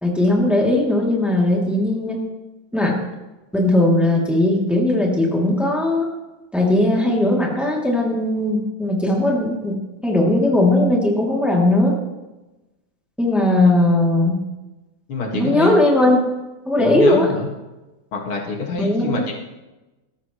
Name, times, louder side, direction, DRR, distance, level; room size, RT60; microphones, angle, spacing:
voice 1, 0.0-2.2 2.7-2.9 3.5-6.1 6.5-9.8 10.0-11.9 13.2-14.4 15.3-16.2 16.7-17.3 18.8-19.2, left 1 dB, ahead, -2 dB, 2.5 m, -18 dB
voice 2, 15.1-15.8 16.8-17.5 18.1-19.3, left 4 dB, 90° left, 0 dB, 2.9 m, -26 dB
19.5 x 13.5 x 3.1 m, 1.1 s
omnidirectional pair, 2.3 m